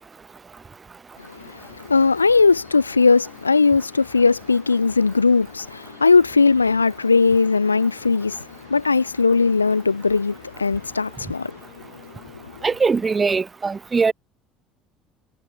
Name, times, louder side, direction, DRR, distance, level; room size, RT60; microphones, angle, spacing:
voice 1, 1.2-11.9 12.4-12.6, left 4 dB, 85° left, 0.4 m, -19 dB
sound 1, 1.4-13.4, left 24 dB, 65° left, 5.1 m, -49 dB
voice 2, 12.6-14.1, right 4 dB, 25° right, 0.4 m, -21 dB
figure-of-eight pair, 60°, 0 cm